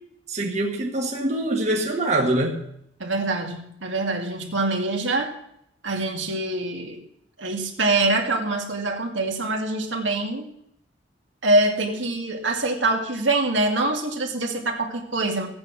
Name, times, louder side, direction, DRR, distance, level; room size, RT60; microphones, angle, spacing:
voice 1, 0.3-2.7, right 1 dB, 35° right, 1 dB, 1.5 m, -24 dB
voice 2, 3.0-5.3 5.8-7.0 7.4-10.5 11.4-15.5, right 2 dB, 75° right, 2 dB, 2.2 m, -24 dB
15.0 x 8.7 x 6.2 m, 0.75 s
head